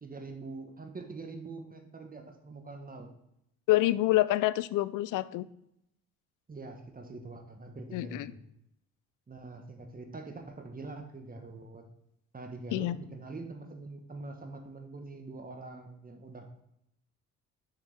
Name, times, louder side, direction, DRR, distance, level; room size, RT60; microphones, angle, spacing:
voice 1, 0.0-3.1 6.5-8.4 9.3-11.8 12.3-16.6, right 3 dB, 25° right, 5 dB, 1.2 m, -44 dB
voice 2, 3.7-5.5 7.9-8.3 12.7-13.0, left 16 dB, 65° left, 17 dB, 0.5 m, -27 dB
6.5 x 6.5 x 3.4 m, 0.76 s
supercardioid pair, 75°, 34 cm